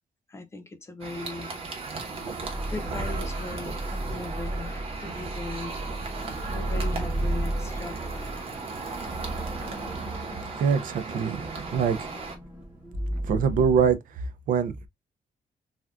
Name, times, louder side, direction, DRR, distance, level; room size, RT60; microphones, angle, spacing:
voice 1, 0.3-1.5 2.4-5.8 6.5-8.4, left 3 dB, 20° left, 0.3 m, -39 dB
sound 1, 1.0-12.4, right 4 dB, 45° right, 0.9 m, -36 dB
sound 2, 2.4-13.9, right 1 dB, 10° right, 0.8 m, -34 dB
voice 2, 10.6-11.4 11.7-12.1 13.2-14.0 14.5-14.9, right 7 dB, 80° right, 0.4 m, -23 dB
3.3 x 2.4 x 2.4 m
wide cardioid pair, 175°, 14 cm